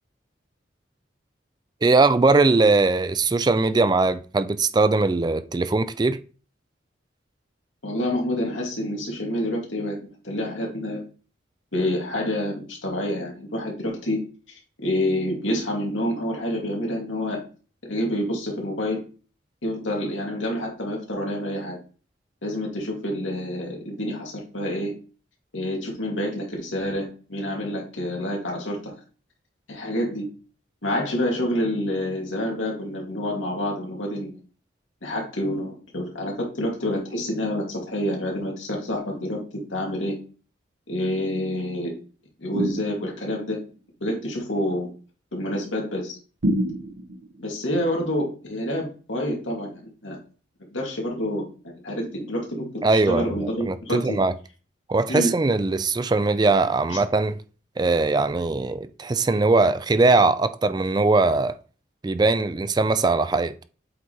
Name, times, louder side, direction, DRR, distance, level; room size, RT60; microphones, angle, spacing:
voice 1, 1.8-6.2 52.8-54.3 54.9-57.4 57.8-61.6 62.0-63.5, right 3 dB, 20° right, 0.3 m, -20 dB
voice 2, 7.8-11.0 11.7-17.4 17.8-19.0 19.6-21.8 22.4-24.9 25.5-28.9 29.7-30.3 30.8-34.3 35.0-40.2 40.9-41.9 42.4-43.6 44.0-44.9 45.3-46.2 47.4-50.2 50.7-54.2 55.1-55.3 56.9-57.0, left 1 dB, 85° left, 2.5 m, -28 dB
sound 1, 42.5-43.4 46.4-47.3, equal, 80° right, 0.9 m, -27 dB
7.9 x 3.2 x 4.3 m
head